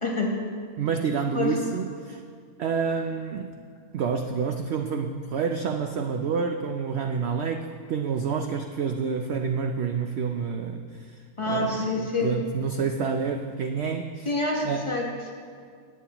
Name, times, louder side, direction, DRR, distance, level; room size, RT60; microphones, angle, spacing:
voice 1, 0.0-0.4 1.3-1.5 11.4-12.3 14.2-15.3, left 2 dB, 20° left, -2 dB, 1.0 m, -27 dB
voice 2, 0.8-2.2 2.6-3.5 3.9-14.3 14.6-14.9, right 6 dB, 75° right, 5 dB, 0.6 m, -28 dB
16.5 x 8.6 x 2.9 m, 2.1 s
omnidirectional pair, 1.6 m